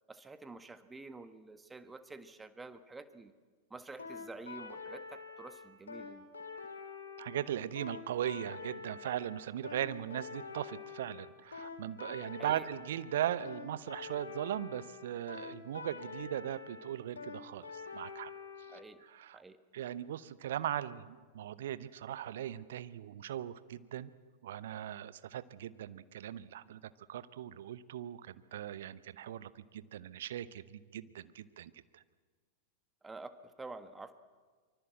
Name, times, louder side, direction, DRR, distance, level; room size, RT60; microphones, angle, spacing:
voice 1, 0.1-3.3 3.7-6.3 12.4-12.7 18.7-19.0 19.3-19.6 33.0-33.3 33.6-34.1, right 3 dB, 10° right, 10 dB, 1.4 m, -48 dB
sound 1, 4.0-18.8, left 5 dB, 70° left, 4.3 m, -46 dB
voice 2, 7.2-17.6 17.9-18.3 19.0-19.4 19.7-24.1 24.4-26.8 27.1-32.0, right 11 dB, 60° right, 15 dB, 0.9 m, -39 dB
24.5 x 24.0 x 7.7 m, 1.5 s
figure-of-eight pair, 90°, 0 cm